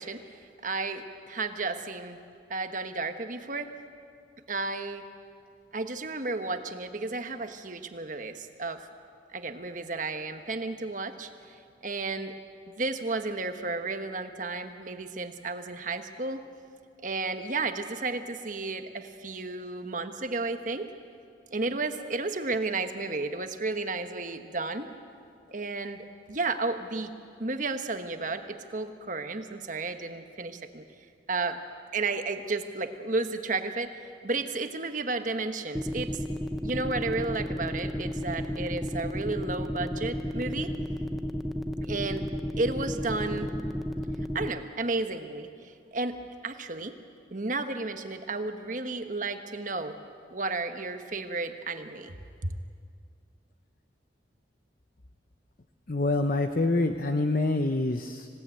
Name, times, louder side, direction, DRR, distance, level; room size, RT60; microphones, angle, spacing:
voice 1, 0.0-2.2 2.5-3.7 4.5-5.1 5.7-8.9 9.3-11.6 11.8-12.3 12.8-16.4 17.0-20.9 21.5-24.9 25.5-27.1 27.4-30.8 31.3-31.6 31.9-36.2 36.6-40.7 41.8-42.3 42.6-43.5 44.3-47.0 47.3-50.0 50.3-52.1 52.4-52.5, right 3 dB, 40° right, 7 dB, 1.3 m, -33 dB
sound 1, 35.7-44.5, equal, ahead, 0.7 m, -32 dB
voice 2, 55.9-58.3, left 2 dB, 45° left, 7 dB, 0.8 m, -26 dB
26.5 x 17.5 x 9.1 m, 2.3 s
head